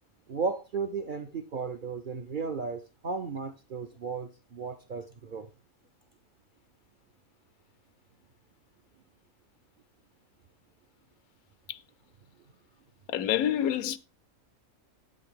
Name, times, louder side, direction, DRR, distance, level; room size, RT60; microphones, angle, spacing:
voice 1, 0.3-5.5, right 5 dB, 60° right, 0.5 m, -35 dB
voice 2, 13.1-14.0, left 10 dB, 90° left, 1.1 m, -27 dB
8.3 x 7.6 x 3.6 m
omnidirectional pair, 1.5 m